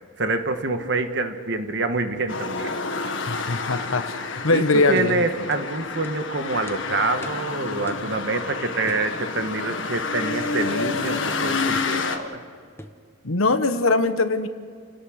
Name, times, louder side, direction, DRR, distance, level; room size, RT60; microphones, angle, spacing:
voice 1, 0.2-2.7 4.5-12.4, right 3 dB, 55° right, 7 dB, 1.6 m, -26 dB
sound 1, 2.3-12.2, left 4 dB, 60° left, 1.7 m, -29 dB
voice 2, 3.3-4.2 4.4-5.3 13.2-14.5, left 3 dB, 80° left, 9 dB, 1.3 m, -21 dB
sound 2, 5.0-5.1 5.5-5.6 6.0-6.2 6.7-6.8 7.2-7.5 7.9-8.1 8.9-9.1 10.4-10.6 11.7-12.0 12.8-13.0, left 1 dB, 10° left, 0.9 m, -42 dB
29.5 x 18.0 x 6.6 m, 2.1 s
head